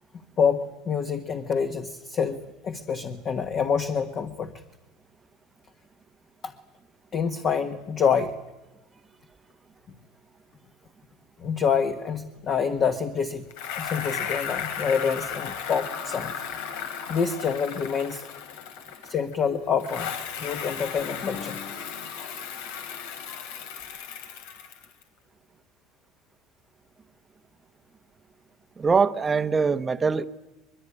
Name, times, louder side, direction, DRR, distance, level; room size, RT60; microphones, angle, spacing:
voice 1, 0.4-4.5 6.4-6.5 7.1-8.4 11.4-13.4 13.8-16.3 17.1-18.3 19.1-20.1 20.4-21.8, left 6 dB, 30° left, 1.5 m, -27 dB
Bicycle, 13.5-19.4 19.8-25.0, left 8 dB, 85° left, 3.2 m, -35 dB
voice 2, 28.8-30.2, right 5 dB, 15° right, 1.0 m, -22 dB
23.0 x 23.0 x 9.9 m
cardioid pair, 155°, 0 cm